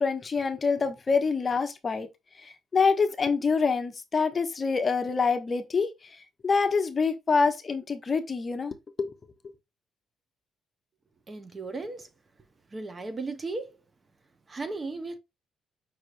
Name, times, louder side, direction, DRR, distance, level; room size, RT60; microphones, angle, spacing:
voice 1, 0.0-2.1 2.4-5.9 6.4-9.1, left 5 dB, 35° left, 0.8 m, -26 dB
voice 2, 11.3-12.1 12.7-13.8 14.5-15.2, right 3 dB, 35° right, 0.8 m, -35 dB
5.4 x 3.2 x 2.5 m
cardioid pair, 90°, 0 cm